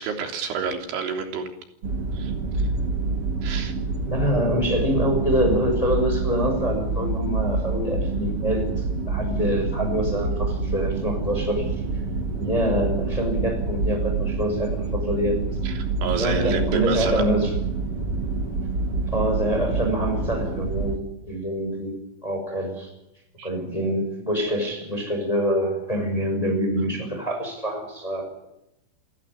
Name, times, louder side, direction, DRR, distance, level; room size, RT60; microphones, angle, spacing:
voice 1, 0.0-1.5 2.1-2.7 3.4-3.7 15.6-17.4 23.4-23.5, right 5 dB, 70° right, 4 dB, 5.7 m, -29 dB
sound 1, 1.8-21.0, right 3 dB, 40° right, 2.5 m, -27 dB
voice 2, 4.1-11.7 12.4-15.4 16.2-17.5 19.1-22.9 23.4-28.5, equal, 5° left, 4 dB, 5.5 m, -25 dB
29.5 x 14.0 x 9.9 m, 0.86 s
omnidirectional pair, 5.5 m